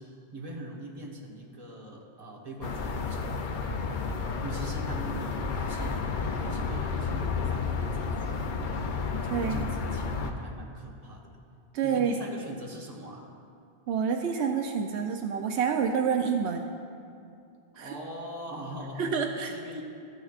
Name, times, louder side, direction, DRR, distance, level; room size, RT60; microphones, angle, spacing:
voice 1, 0.0-4.1 4.4-8.5 9.1-11.4 11.8-13.3 17.8-19.1 19.4-19.8, right 1 dB, 35° right, -2 dB, 1.2 m, -42 dB
sound 1, 2.6-10.3, left 4 dB, 55° left, 0.6 m, -31 dB
voice 2, 9.3-9.7 11.7-12.2 13.9-16.7 17.8-17.9 19.0-19.5, right 6 dB, 80° right, 4 dB, 0.8 m, -28 dB
13.5 x 9.7 x 2.4 m, 2.5 s
omnidirectional pair, 1.1 m